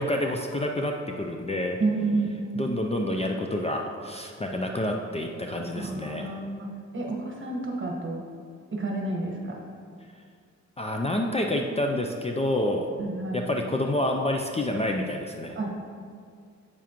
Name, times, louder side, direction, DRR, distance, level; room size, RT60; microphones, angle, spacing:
voice 1, 0.0-1.8 2.6-6.3 10.8-12.9 13.3-15.6, left 1 dB, 20° left, 2 dB, 0.5 m, -28 dB
voice 2, 1.8-2.6 5.8-6.7 6.9-8.2 8.7-9.7 13.0-13.4 15.5-15.7, right 3 dB, 40° right, -1 dB, 1.3 m, -30 dB
8.3 x 7.2 x 3.0 m, 2.1 s
wide cardioid pair, 115°, 29 cm